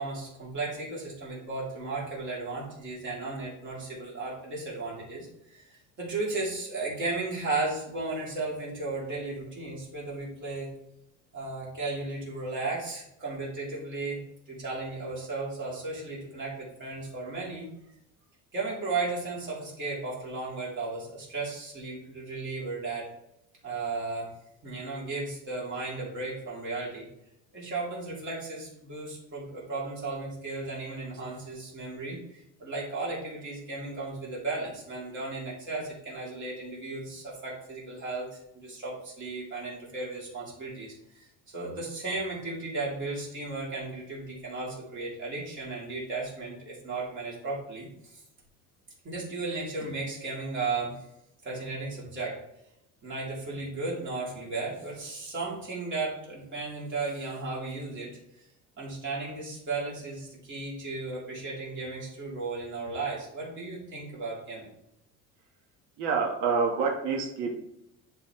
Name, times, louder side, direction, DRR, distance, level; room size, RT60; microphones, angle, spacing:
voice 1, 0.0-5.3 5.5-10.7 11.3-14.2 14.5-17.7 18.5-23.1 23.6-24.3 24.6-27.1 27.5-41.3 41.5-48.2 49.0-51.0 51.4-52.4 53.0-58.1 58.8-64.7, right 3 dB, 40° right, -5 dB, 2.9 m, -35 dB
voice 2, 66.0-67.5, right 5 dB, 85° right, 0 dB, 1.2 m, -27 dB
10.5 x 4.1 x 3.0 m, 0.81 s
cardioid pair, 175°, 31 cm